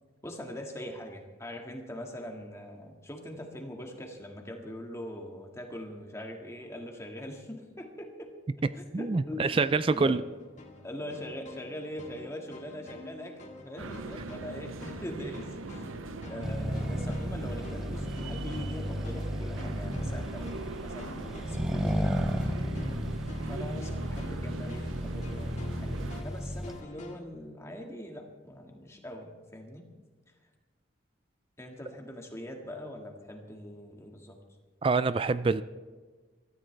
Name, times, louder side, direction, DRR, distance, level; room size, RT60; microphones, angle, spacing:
voice 1, 0.2-8.3 8.7-9.6 9.9-10.2 10.8-15.9 16.3-22.2 23.4-29.8 30.3-30.5 31.6-34.4, left 1 dB, 15° left, 1.8 m, -42 dB
voice 2, 8.9-10.2 34.8-35.6, right 4 dB, 25° right, 0.3 m, -26 dB
sound 1, 9.7-27.2, left 2 dB, 35° left, 2.1 m, -49 dB
sound 2, 13.8-26.2, right 3 dB, 90° right, 0.7 m, -41 dB
Accelerating revving vroom, 16.4-26.8, equal, 5° right, 0.7 m, -34 dB
23.0 x 14.0 x 3.4 m
head